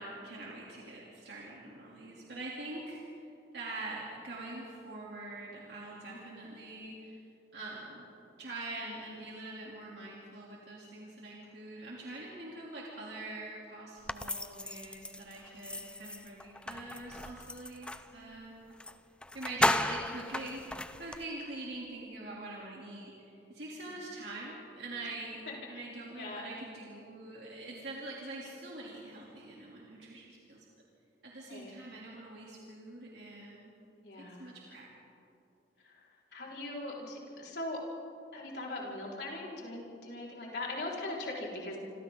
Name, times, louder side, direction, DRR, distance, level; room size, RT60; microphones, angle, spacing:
voice 1, 0.0-3.3 3.5-7.2 7.5-8.0 8.4-18.7 19.3-25.4 25.7-30.6 31.2-33.7 34.2-34.9, right 2 dB, 75° right, -5 dB, 3.4 m, -44 dB
sound 1, 14.1-18.1 18.8-18.9 19.2-21.2, left 1 dB, 5° left, 0.4 m, -35 dB
voice 2, 25.5-25.9 26.2-26.5 31.5-31.7 34.0-34.5 35.8-36.1 36.3-37.8 38.3-41.8, left 2 dB, 75° left, -4 dB, 5.1 m, -40 dB
28.0 x 26.0 x 4.0 m, 2.8 s
head